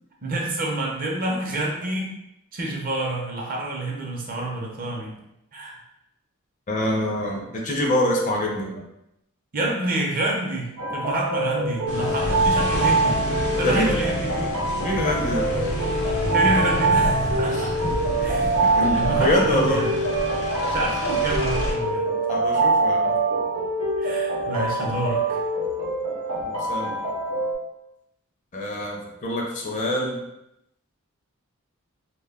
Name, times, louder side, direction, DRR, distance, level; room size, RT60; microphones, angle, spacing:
voice 1, 0.2-2.1 2.5-5.2 5.5-5.8 9.5-13.2 13.5-14.5 16.3-17.7 18.2-19.9 20.7-22.1 24.0-25.4, right 1 dB, 40° right, -2 dB, 0.5 m, -28 dB
voice 2, 6.7-8.9 13.6-13.9 14.8-15.5 17.4-17.7 18.4-19.8 22.3-23.1 26.4-27.0 28.5-30.2, left 1 dB, 35° left, -1 dB, 0.4 m, -25 dB
sound 1, 10.8-27.5, right 2 dB, 85° right, 0.7 m, -24 dB
sound 2, 11.9-21.7, equal, 85° left, 0.5 m, -29 dB
2.2 x 2.1 x 3.3 m, 0.86 s
head